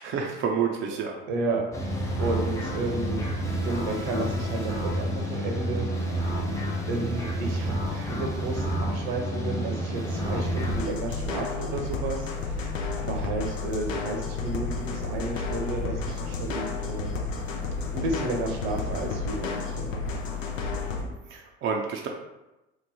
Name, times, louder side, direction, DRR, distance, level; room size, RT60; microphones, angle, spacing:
voice 1, 0.0-1.2 21.3-22.1, right 6 dB, 35° right, 1 dB, 0.5 m, -29 dB
voice 2, 1.3-1.6 2.2-3.2 3.6-6.2 6.9-17.1 17.9-19.9, right 2 dB, 60° right, 1 dB, 0.8 m, -32 dB
sound 1, 1.7-10.8, right 1 dB, 10° left, 0.6 m, -29 dB
sound 2, 1.9-21.1, left 2 dB, 65° left, 1.0 m, -42 dB
sound 3, 10.6-21.0, left 4 dB, 85° left, 0.6 m, -32 dB
3.1 x 2.1 x 3.9 m, 1.0 s
figure-of-eight pair, 65°, 37 cm